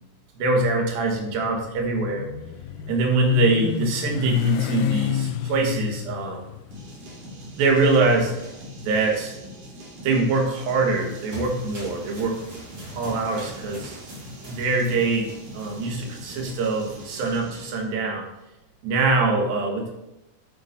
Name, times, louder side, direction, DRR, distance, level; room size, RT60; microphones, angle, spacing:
voice 1, 0.4-2.3 2.9-6.5 7.6-8.3 8.8-9.3 10.0-12.4 12.9-14.0 14.5-18.2 18.8-19.9, right 3 dB, 80° right, 1 dB, 3.1 m, -23 dB
Motorcycle, 1.2-9.4, left 10 dB, 80° left, 2.1 m, -30 dB
sound 1, 6.7-17.9, right 1 dB, 60° right, 3.5 m, -43 dB
sound 2, 10.9-17.3, left 1 dB, 30° right, 3.6 m, -43 dB
9.5 x 8.6 x 2.6 m, 0.92 s
omnidirectional pair, 4.3 m